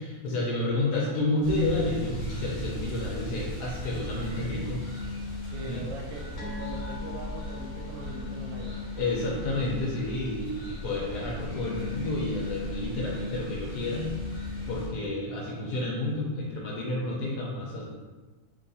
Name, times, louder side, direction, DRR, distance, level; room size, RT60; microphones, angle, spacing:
voice 1, 0.0-4.8 5.6-5.8 9.0-14.1 14.7-17.8, left 2 dB, 70° left, -4 dB, 1.0 m, -30 dB
sound 1, 1.4-14.9, left 1 dB, 50° left, 0.9 m, -36 dB
voice 2, 5.5-8.8, right 2 dB, 75° right, -1 dB, 1.1 m, -41 dB
sound 2, 6.4-13.2 13.5-13.7 14.1-14.2, left 4 dB, 90° left, 1.5 m, -45 dB
3.3 x 2.8 x 2.6 m, 1.3 s
omnidirectional pair, 2.2 m